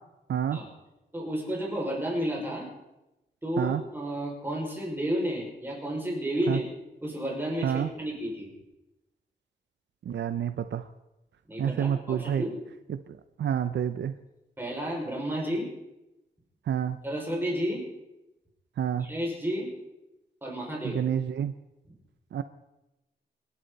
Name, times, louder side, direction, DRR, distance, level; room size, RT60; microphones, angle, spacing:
voice 1, 1.1-2.7 3.4-6.6 7.0-8.5 11.5-12.6 14.6-15.7 17.0-17.8 19.0-19.7 20.4-21.0, equal, 10° right, -3 dB, 5.7 m, -31 dB
voice 2, 10.1-10.8 11.6-12.4 13.4-14.1 16.7-17.0 18.8-19.1 20.9-21.5 22.3-22.4, right 9 dB, 90° right, 10 dB, 0.7 m, -28 dB
27.0 x 11.5 x 4.1 m, 0.94 s
wide cardioid pair, 135°, 18 cm